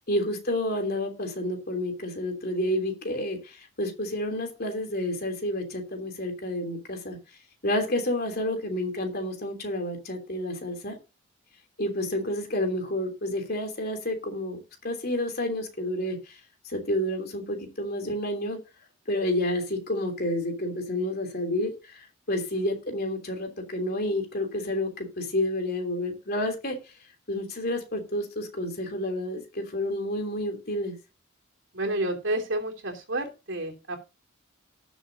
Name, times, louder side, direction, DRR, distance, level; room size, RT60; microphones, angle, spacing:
voice 1, 0.1-7.2 7.6-11.0 11.8-16.4 16.6-18.6 19.1-26.9 27.3-31.0, left 1 dB, 45° left, 4 dB, 3.2 m, -30 dB
voice 2, 31.7-34.0, right 1 dB, 60° right, 2 dB, 3.1 m, -30 dB
18.5 x 7.3 x 2.8 m, 0.28 s
head